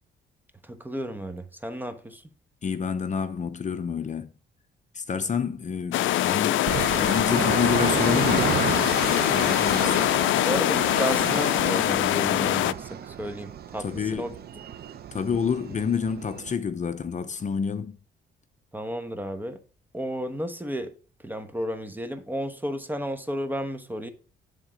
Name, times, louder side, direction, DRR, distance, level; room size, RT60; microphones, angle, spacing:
voice 1, 0.7-2.2 9.8-10.1 10.4-14.3 18.7-19.6 19.9-20.9 21.2-24.1, equal, 10° right, 1.1 m, -32 dB
voice 2, 2.6-4.3 4.9-8.6 9.3-10.0 13.8-14.4 15.1-18.0, left 6 dB, 35° left, 0.7 m, -28 dB
sound 1, 5.9-12.7, left 14 dB, 75° left, 0.4 m, -23 dB
sound 2, 6.7-16.5, right 8 dB, 50° right, 0.7 m, -32 dB
10.5 x 3.7 x 5.0 m
cardioid pair, 90°, 20 cm